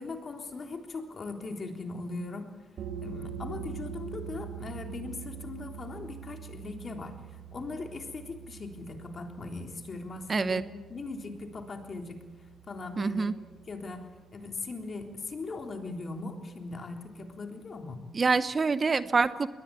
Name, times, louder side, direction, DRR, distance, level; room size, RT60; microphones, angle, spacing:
voice 1, 0.0-2.5 3.0-10.6 10.9-12.2 12.7-13.3 13.7-18.0, left 3 dB, 40° left, 4 dB, 3.5 m, -39 dB
sound 1, 2.8-14.1, right 7 dB, 75° right, 3.6 m, -44 dB
voice 2, 10.3-10.6 13.0-13.3 18.1-19.5, right 4 dB, 35° right, 14 dB, 0.8 m, -26 dB
22.0 x 19.0 x 8.4 m, 1.3 s
cardioid pair, 90°, 0 cm